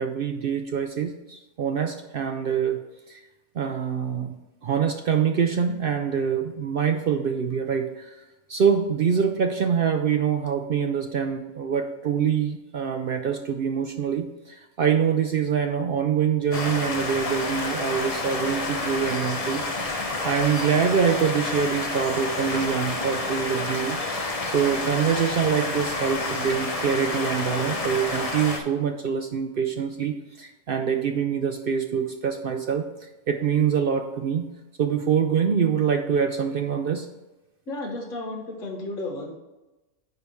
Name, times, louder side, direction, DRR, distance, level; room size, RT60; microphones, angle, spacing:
voice 1, 0.0-2.8 3.1-3.2 3.6-4.4 4.6-8.1 8.5-34.5 34.8-37.1, right 7 dB, 65° right, 5 dB, 0.5 m, -25 dB
sound 1, 16.5-28.6, left 2 dB, 30° left, 0.7 m, -29 dB
voice 2, 37.7-39.4, left 2 dB, 60° left, 0 dB, 1.7 m, -33 dB
9.5 x 3.5 x 5.4 m, 1.1 s
omnidirectional pair, 1.5 m